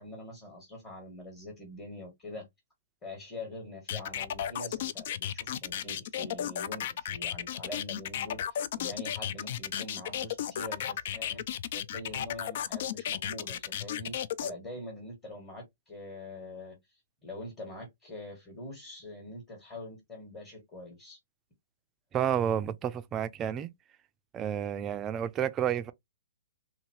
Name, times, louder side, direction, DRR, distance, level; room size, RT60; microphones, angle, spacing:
voice 1, 0.0-2.5 3.0-11.4 11.7-14.2 14.4-16.8 17.2-21.2, left 1 dB, 25° left, 1.5 m, -44 dB
sound 1, 3.9-14.5, left 10 dB, 55° left, 0.3 m, -34 dB
voice 2, 22.1-23.7 24.3-25.9, right 9 dB, 20° right, 0.4 m, -30 dB
2.7 x 2.7 x 2.9 m
hypercardioid pair, 140°, 0 cm